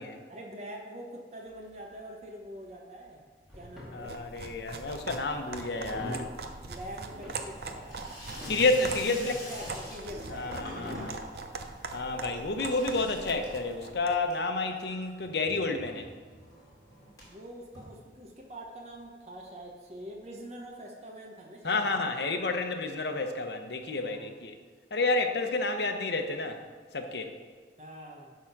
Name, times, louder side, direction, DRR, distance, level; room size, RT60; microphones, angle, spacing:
voice 1, 0.3-3.2 3.5-4.4 6.6-8.0 8.3-8.6 9.1-10.5 17.3-22.0 23.9-24.4 27.8-28.4, equal, 40° right, -1 dB, 1.0 m, -44 dB
Water tap faucet / Sink (filling or washing), 1.5-2.2 2.5-3.1 3.4-18.6 19.0-19.1 19.3-19.4 19.6-19.7 20.7-20.8, equal, 20° left, 2.7 m, -49 dB
sound 1, 3.4-3.9 4.9-5.1 5.7-6.3 7.1-7.3 7.9-8.0 8.2-8.8 9.5-9.7 10.5-11.1 11.7-11.8, left 1 dB, 5° right, 2.1 m, -41 dB
voice 2, 3.9-6.3 8.4-9.3 10.3-11.2 11.9-16.1 21.6-24.6 24.9-26.6 26.9-27.3, left 3 dB, 70° left, 5 dB, 0.9 m, -30 dB
sound 2, 3.9-14.2, right 3 dB, 60° right, 0.6 m, -42 dB
11.0 x 3.8 x 5.9 m, 1.5 s
head